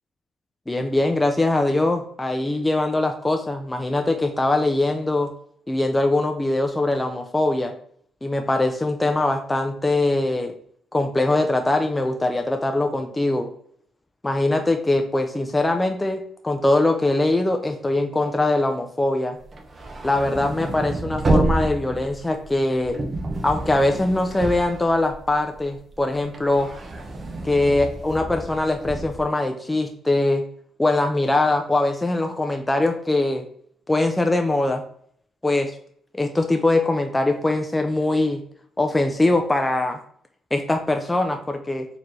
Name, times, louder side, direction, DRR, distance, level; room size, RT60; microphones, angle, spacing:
voice 1, 0.7-5.3 5.7-7.7 8.2-10.5 10.9-13.5 14.2-19.4 20.0-23.0 23.4-26.7 27.4-30.5 30.8-33.4 33.9-34.8 35.4-35.7 36.1-38.4 38.8-40.0 40.5-41.9, left 2 dB, 15° left, 5 dB, 0.4 m, -22 dB
sound 1, 19.4-25.6 25.9-29.2, right 2 dB, 35° right, 0.8 m, -28 dB
4.2 x 2.8 x 3.0 m, 0.64 s
cardioid pair, 90°, 0 cm